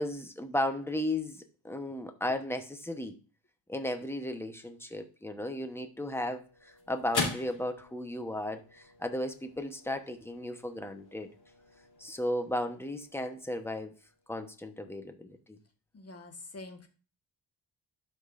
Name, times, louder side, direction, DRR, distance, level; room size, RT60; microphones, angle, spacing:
voice 1, 0.0-3.1 3.7-11.3 12.0-13.9 14.3-15.4, left 1 dB, 5° left, 6 dB, 1.0 m, -35 dB
sound 1, 5.9-14.4, left 3 dB, 55° left, 3.3 m, -42 dB
voice 2, 15.9-16.9, left 2 dB, 30° left, 5 dB, 1.5 m, -46 dB
12.5 x 5.4 x 2.6 m, 0.36 s
wide cardioid pair, 100°, 46 cm